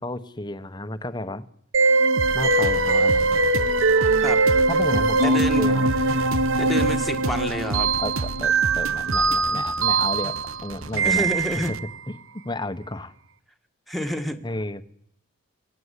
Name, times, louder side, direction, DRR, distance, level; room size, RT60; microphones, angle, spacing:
voice 1, 0.0-1.4 2.3-3.4 4.7-5.9 8.0-8.1 8.4-10.4 10.6-11.3 11.7-11.8 12.4-13.1 14.4-14.8, left 1 dB, 20° left, 12 dB, 1.1 m, -32 dB
sound 1, 1.7-11.9, right 3 dB, 65° right, 1.3 m, -21 dB
sound 2, 2.2-11.8, right 2 dB, 85° right, 1.1 m, -33 dB
voice 2, 5.2-5.7 6.6-7.9 11.0-11.7 13.9-14.4, left 1 dB, ahead, 5 dB, 1.8 m, -28 dB
24.5 x 18.5 x 8.3 m, 0.68 s
head